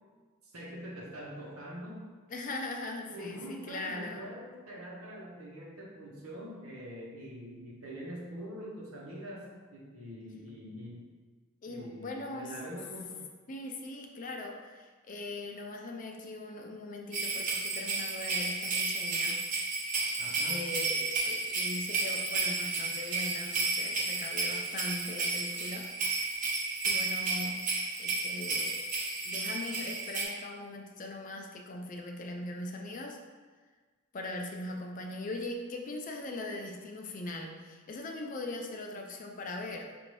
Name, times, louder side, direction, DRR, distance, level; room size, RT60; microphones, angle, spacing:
voice 1, 0.5-2.0 3.1-11.0 11.7-13.2 20.2-20.7, equal, 85° right, -3 dB, 1.0 m, -44 dB
voice 2, 2.3-4.3 11.6-12.5 13.5-19.4 20.4-25.9 26.3-27.6 28.0-28.8 29.2-33.2 34.1-39.9, left 2 dB, 40° left, 2 dB, 0.4 m, -40 dB
sound 1, 17.1-30.2, right 3 dB, 40° right, 0.7 m, -32 dB
5.4 x 2.6 x 3.2 m, 1.4 s
head